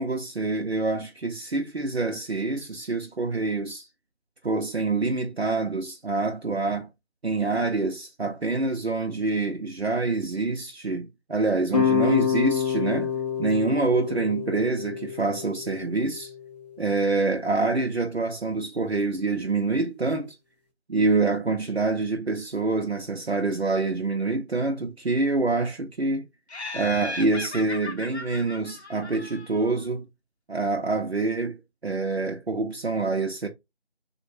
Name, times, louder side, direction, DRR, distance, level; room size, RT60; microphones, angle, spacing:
voice 1, 0.0-3.9 4.4-6.9 7.2-13.1 13.4-16.3 16.8-20.4 20.9-26.2 26.7-30.0 30.5-33.5, right 3 dB, 65° right, 0.7 m, -26 dB
sound 1, 11.7-16.8, left 7 dB, 35° left, 0.8 m, -27 dB
Laughter, 26.5-29.8, left 2 dB, 70° left, 0.8 m, -37 dB
3.5 x 2.4 x 2.9 m
figure-of-eight pair, 175°, 34 cm